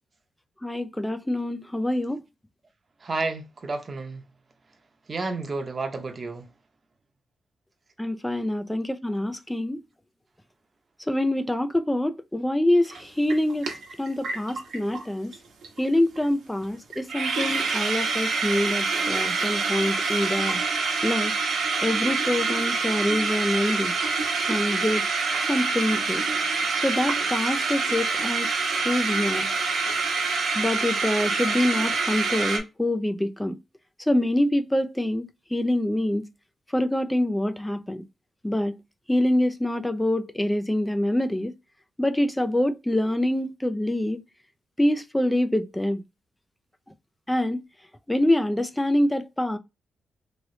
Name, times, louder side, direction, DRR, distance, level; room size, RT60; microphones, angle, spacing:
voice 1, 0.6-2.2 8.0-9.8 11.1-13.7 14.0-15.3 15.8-20.6 21.0-21.3 21.8-23.9 24.5-25.1 25.5-26.2 26.8-28.5 28.8-29.5 30.5-33.6 34.1-36.3 36.7-38.0 38.4-38.8 39.1-41.5 42.0-44.2 44.8-46.0 47.3-47.6 48.1-49.6, left 1 dB, 5° left, 0.4 m, -25 dB
voice 2, 3.0-4.2 5.1-6.5, right 3 dB, 35° right, 0.8 m, -31 dB
sound 1, 12.9-13.0 13.3-15.0 15.3-15.4 15.6-15.9 16.1-16.2 16.6-16.7 16.9-32.6, right 4 dB, 75° right, 1.0 m, -26 dB
3.1 x 2.9 x 2.7 m
cardioid pair, 115°, 0 cm